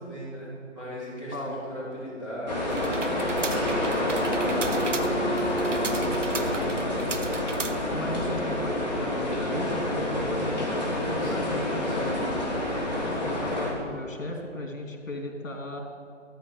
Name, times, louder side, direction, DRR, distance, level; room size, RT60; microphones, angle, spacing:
voice 1, 0.0-2.7 3.6-5.2 5.6-7.0 11.0-12.1, equal, 5° right, -21 dB, 3.2 m, -39 dB
sound 1, 2.5-13.7, left 1 dB, 35° left, 3.1 m, -28 dB
sound 2, 2.7-8.2, right 4 dB, 70° right, 1.1 m, -37 dB
Wind instrument woodwind instrument, 3.2-7.7, right 2 dB, 55° left, 1.1 m, -36 dB
voice 2, 7.9-11.8 13.1-15.8, left 1 dB, 85° left, 1 dB, 3.0 m, -36 dB
13.5 x 5.6 x 9.0 m, 2.5 s
figure-of-eight pair, 175°, 38 cm